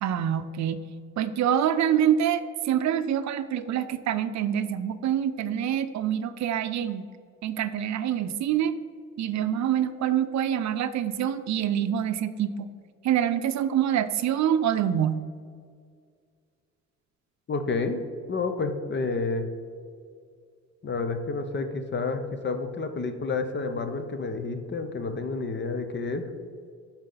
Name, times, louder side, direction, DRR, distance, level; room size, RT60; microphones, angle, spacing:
voice 1, 0.0-0.8 1.2-7.0 7.4-8.7 9.2-12.7 13.0-15.2, right 9 dB, 65° right, 11 dB, 0.5 m, -26 dB
voice 2, 17.5-18.0 18.3-19.5 20.8-26.3, left 3 dB, 35° left, 8 dB, 0.8 m, -29 dB
11.5 x 4.4 x 3.9 m, 2.1 s
cardioid pair, 90°, 30 cm